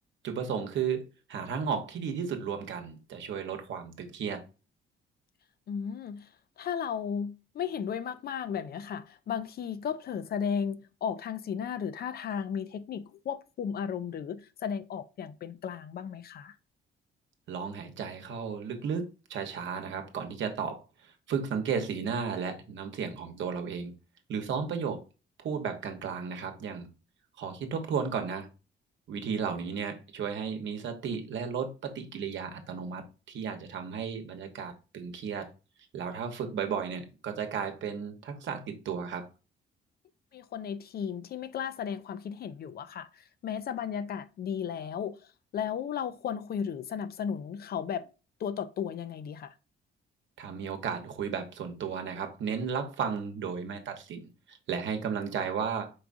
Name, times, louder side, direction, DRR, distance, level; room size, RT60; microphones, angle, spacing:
voice 1, 0.2-4.4 17.5-19.0 19.3-23.9 24.3-25.0 25.4-26.9 27.4-28.5 29.1-33.0 33.3-35.5 35.9-39.3 50.4-55.9, right 6 dB, 70° right, 0.9 m, -34 dB
voice 2, 5.7-6.3 6.6-16.6 40.3-48.1 48.4-49.5, left 7 dB, 50° left, 0.4 m, -35 dB
4.7 x 3.5 x 2.5 m
cardioid pair, 90°, 20 cm